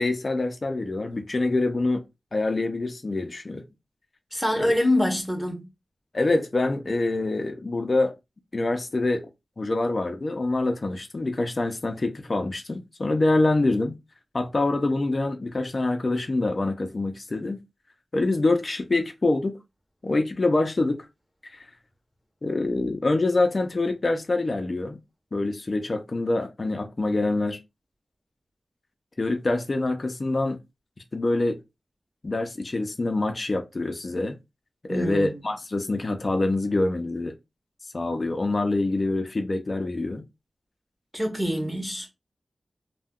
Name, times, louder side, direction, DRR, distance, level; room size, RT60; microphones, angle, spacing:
voice 1, 0.0-2.0 2.3-3.6 4.5-4.7 6.1-8.1 8.5-9.3 9.6-14.0 14.3-17.6 18.1-19.6 20.0-21.1 21.5-21.6 22.4-25.0 25.3-27.6 29.2-30.6 31.1-31.6 32.2-34.4 34.8-37.3 37.9-40.2, left 2 dB, 45° left, 0.4 m, -25 dB
voice 2, 4.3-5.7 34.9-35.4 41.1-42.1, left 1 dB, ahead, 0.7 m, -25 dB
2.2 x 2.1 x 3.5 m
wide cardioid pair, 95°, 0 cm